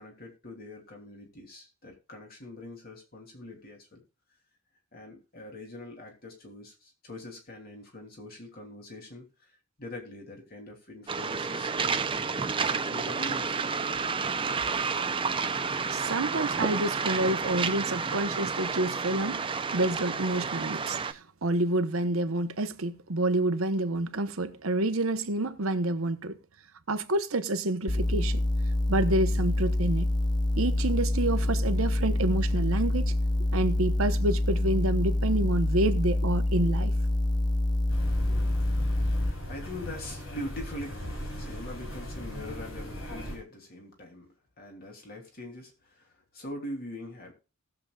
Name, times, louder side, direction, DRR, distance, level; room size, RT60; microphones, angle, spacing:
voice 1, 0.0-4.0 4.9-9.5 9.8-12.3 12.6-13.7 13.9-14.0 38.0-47.3, left 1 dB, 45° left, 3.0 m, -43 dB
Waves surf, 11.1-21.1, right 5 dB, 25° right, 0.6 m, -30 dB
voice 2, 15.9-26.4 26.9-28.4 28.9-30.1 30.6-33.1 33.5-36.9, right 2 dB, 90° right, 1.0 m, -28 dB
sound 1, 27.9-39.3, left 1 dB, 20° left, 0.7 m, -26 dB
sound 2, 37.9-43.4, equal, 75° left, 5.2 m, -38 dB
19.0 x 7.0 x 2.4 m
head